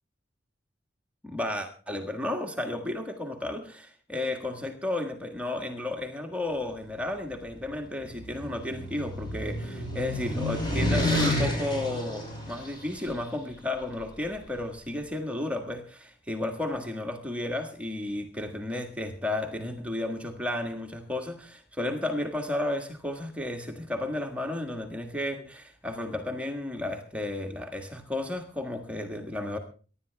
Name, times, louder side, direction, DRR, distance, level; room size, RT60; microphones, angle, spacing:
voice 1, 1.2-29.6, left 1 dB, 5° right, 1.6 m, -33 dB
sound 1, 7.9-13.1, left 1 dB, 25° left, 6.1 m, -30 dB
23.5 x 11.5 x 3.4 m
head